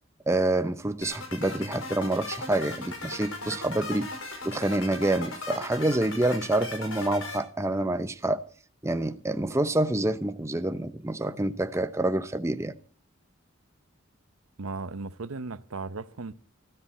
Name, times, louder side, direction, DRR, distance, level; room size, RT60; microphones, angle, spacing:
voice 1, 0.3-4.1 4.4-8.4 8.8-12.7, right 1 dB, 15° right, 0.7 m, -27 dB
sound 1, 1.0-7.4, left 2 dB, 75° left, 5.3 m, -38 dB
voice 2, 14.6-16.3, right 3 dB, 90° right, 0.8 m, -36 dB
20.5 x 13.5 x 4.2 m
head